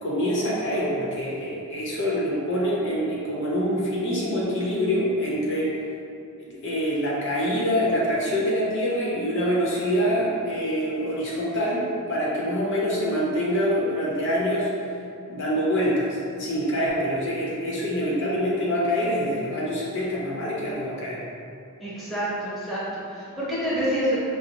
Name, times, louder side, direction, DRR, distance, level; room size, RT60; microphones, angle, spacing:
voice 1, 0.0-5.8 6.4-14.7 15.3-21.2, equal, 55° left, -6 dB, 0.7 m, -25 dB
voice 2, 21.8-24.2, equal, ahead, -11 dB, 0.8 m, -27 dB
5.0 x 2.0 x 2.8 m, 2.5 s
head